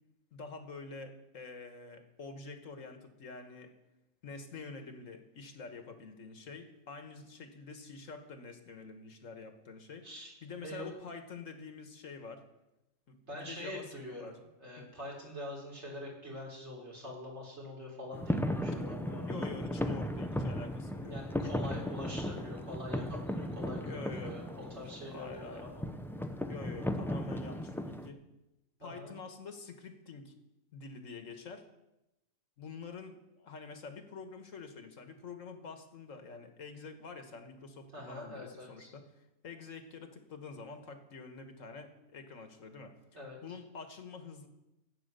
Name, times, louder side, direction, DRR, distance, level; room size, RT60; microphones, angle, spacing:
voice 1, 0.3-3.7 4.2-10.1 10.4-12.5 13.1-14.4 14.8-14.9 18.7-21.7 23.8-24.4 25.1-25.7 26.5-28.2 28.8-30.4 30.7-31.7 32.6-39.1 39.4-43.0 43.4-44.5, left 4 dB, 75° left, 7 dB, 1.7 m, -47 dB
voice 2, 10.6-10.9 13.3-19.4 21.1-25.9 28.8-29.1 37.9-38.9 43.1-43.4, left 1 dB, 55° right, -2 dB, 4.0 m, -44 dB
sound 1, 18.1-28.1, left 1 dB, 5° left, 0.4 m, -36 dB
14.5 x 8.7 x 6.8 m, 0.93 s
omnidirectional pair, 1.4 m